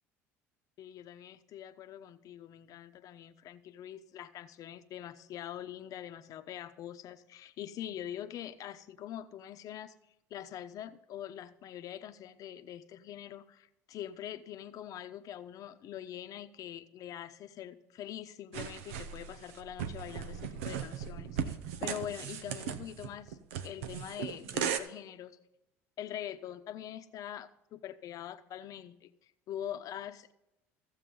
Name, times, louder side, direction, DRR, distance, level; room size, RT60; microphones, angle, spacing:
voice 1, 0.8-9.9 10.3-25.4 26.0-30.3, left 11 dB, 55° left, 10 dB, 0.9 m, -44 dB
sound 1, 18.5-24.8, right 8 dB, 80° right, 0.8 m, -37 dB
15.0 x 7.4 x 3.9 m, 0.90 s
hypercardioid pair, 75°, 7 cm